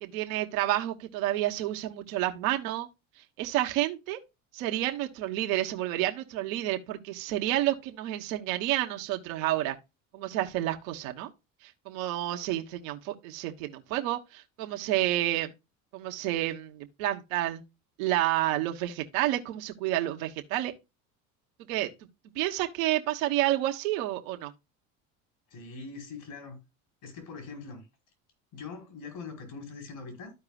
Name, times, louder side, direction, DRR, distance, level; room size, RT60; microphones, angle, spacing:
voice 1, 0.0-2.9 3.4-4.2 4.5-9.8 10.1-11.3 11.6-15.5 15.9-17.6 18.0-20.7 21.7-21.9 22.3-24.5, right 14 dB, 75° right, 1.2 m, -30 dB
voice 2, 25.5-26.6 27.0-27.8 28.5-30.3, left 4 dB, 65° left, 5.0 m, -42 dB
13.5 x 4.8 x 2.3 m
hypercardioid pair, 80°, 40 cm